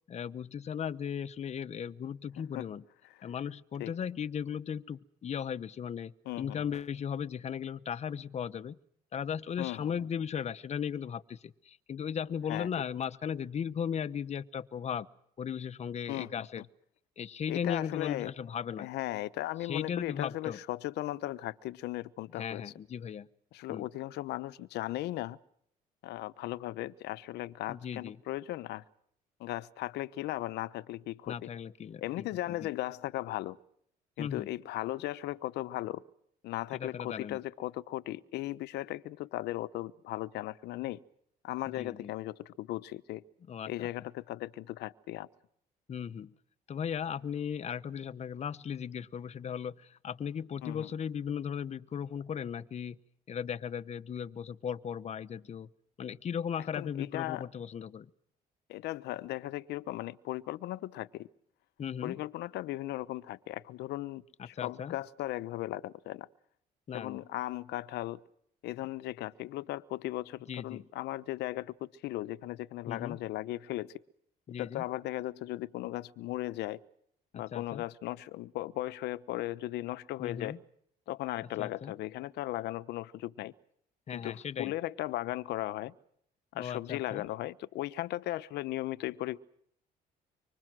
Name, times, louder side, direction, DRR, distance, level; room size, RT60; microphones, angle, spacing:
voice 1, 0.1-2.8 3.2-8.8 9.1-15.1 15.4-16.6 17.2-18.9 19.6-20.6 22.4-23.3 23.7-23.8 27.7-28.2 31.3-32.7 34.2-34.5 36.7-37.4 41.8-42.1 43.5-43.9 45.9-46.3 46.7-53.0 53.3-55.7 56.0-58.1 61.8-62.2 64.4-64.9 66.9-67.2 70.5-70.8 72.9-73.2 74.5-74.8 77.3-77.8 80.2-80.6 81.6-81.9 84.1-84.7 86.5-87.2, left 8 dB, 40° left, 1.0 m, -37 dB
voice 2, 2.4-2.7 3.8-3.9 6.2-6.6 9.6-9.9 12.5-12.7 16.1-16.5 17.5-18.3 18.8-22.6 23.5-25.4 26.0-28.8 29.4-31.5 32.0-33.6 34.2-36.0 36.4-41.0 41.4-43.2 43.7-45.3 50.6-50.9 56.8-57.5 58.7-61.3 62.0-66.3 66.9-68.2 68.6-74.0 74.6-76.8 77.3-80.6 81.1-83.5 84.1-85.9 86.5-89.4, left 16 dB, 80° left, 1.0 m, -37 dB
25.5 x 25.0 x 6.2 m
cardioid pair, 110°, 17 cm